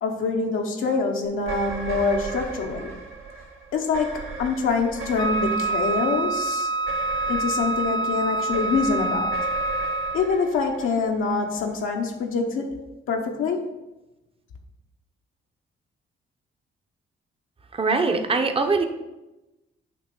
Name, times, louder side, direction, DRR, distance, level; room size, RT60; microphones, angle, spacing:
voice 1, 0.0-2.9 3.7-6.7 7.3-9.3 10.1-12.8 13.1-13.6, left 4 dB, 80° left, 1 dB, 0.9 m, -25 dB
sound 1, 1.3-11.8, right 4 dB, 80° right, 2.0 m, -37 dB
Wind instrument woodwind instrument, 5.2-10.4, right 2 dB, 20° left, 0.6 m, -26 dB
voice 2, 17.7-18.8, right 4 dB, 25° right, 6 dB, 0.7 m, -22 dB
8.4 x 3.1 x 5.9 m, 1.0 s
cardioid pair, 105°, 21 cm